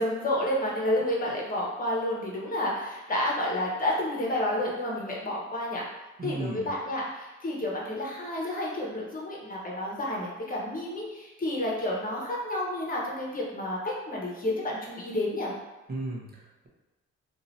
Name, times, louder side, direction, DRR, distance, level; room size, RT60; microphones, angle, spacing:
voice 1, 0.0-5.8 6.2-15.5, left 1 dB, 30° left, -3 dB, 1.1 m, -30 dB
voice 2, 6.2-6.7 15.9-16.7, right 2 dB, 30° right, -2 dB, 0.9 m, -35 dB
2.8 x 2.6 x 4.0 m, 1.1 s
cardioid pair, 90°, 30 cm